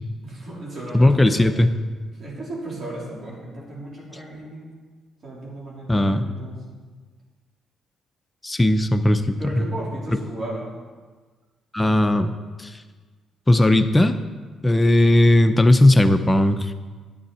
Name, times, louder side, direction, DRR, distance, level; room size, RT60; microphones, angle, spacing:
voice 1, 0.2-1.6 2.1-4.7 5.2-6.8 9.4-10.7, right 1 dB, 45° right, -5 dB, 3.7 m, -35 dB
voice 2, 0.9-1.7 5.9-6.2 8.4-9.7 11.7-12.3 12.6-12.7 13.5-14.2 14.6-16.7, left 1 dB, 15° left, 8 dB, 0.7 m, -17 dB
11.0 x 8.4 x 4.3 m, 1.4 s
cardioid pair, 90°, 0 cm